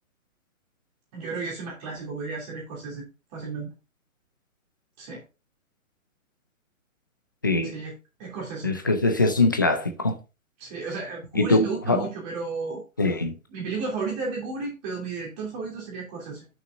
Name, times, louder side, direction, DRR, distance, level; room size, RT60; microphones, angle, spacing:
voice 1, 1.1-3.1 3.3-3.8 5.0-5.2 7.6-7.9 8.2-8.7 10.6-12.8 13.5-16.5, right 4 dB, 30° right, 2.8 m, -33 dB
voice 2, 7.4-7.7 8.6-10.1 11.3-12.1 13.0-13.3, left 2 dB, 15° left, 0.4 m, -22 dB
11.0 x 6.1 x 2.5 m
hypercardioid pair, 145°, 42 cm